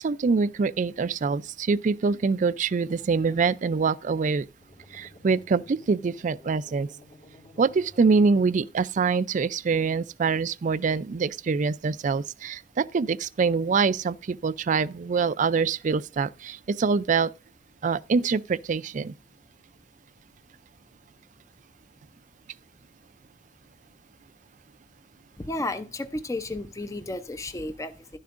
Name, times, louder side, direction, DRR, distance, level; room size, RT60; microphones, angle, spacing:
voice 1, 0.0-4.4 4.9-6.9 7.6-17.3 17.8-19.1, right 5 dB, 45° right, 0.4 m, -25 dB
sound 1, 4.6-8.9, left 1 dB, 45° left, 1.4 m, -53 dB
voice 2, 25.4-28.2, left 2 dB, 15° left, 0.5 m, -33 dB
11.5 x 10.5 x 2.5 m
head